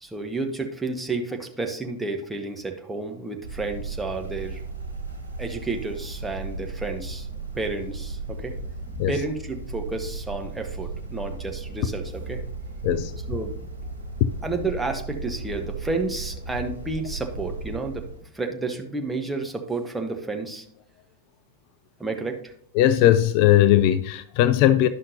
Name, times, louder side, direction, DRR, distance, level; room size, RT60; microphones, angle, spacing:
voice 1, 0.0-4.6 5.4-7.3 7.5-8.6 9.1-12.4 13.3-13.7 14.4-18.1 18.3-20.6 22.0-22.5, right 3 dB, 5° right, 3 dB, 1.0 m, -31 dB
sound 1, 3.4-18.2, right 4 dB, 90° left, 1.2 m, -35 dB
voice 2, 22.8-24.9, left 12 dB, 45° left, 13 dB, 0.3 m, -18 dB
11.0 x 5.7 x 2.7 m, 0.63 s
figure-of-eight pair, 90°, 0 cm